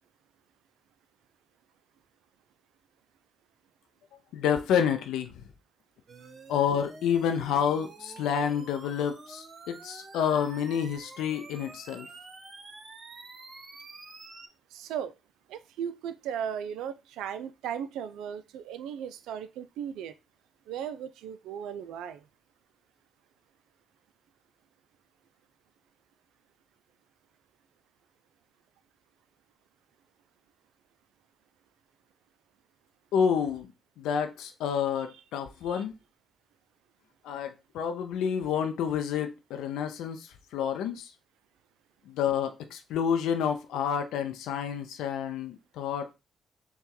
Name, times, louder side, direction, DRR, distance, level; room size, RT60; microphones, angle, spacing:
voice 1, 4.3-5.4 6.5-12.1 33.1-33.7 34.0-35.9 37.2-41.1 42.1-46.1, left 8 dB, 80° left, 0.4 m, -29 dB
sound 1, 6.1-14.5, right 3 dB, 50° right, 0.9 m, -48 dB
voice 2, 14.7-15.1 15.5-20.1 20.7-22.2 35.7-35.8, right 8 dB, 80° right, 0.3 m, -36 dB
4.2 x 2.3 x 3.8 m
hypercardioid pair, 45°, 0 cm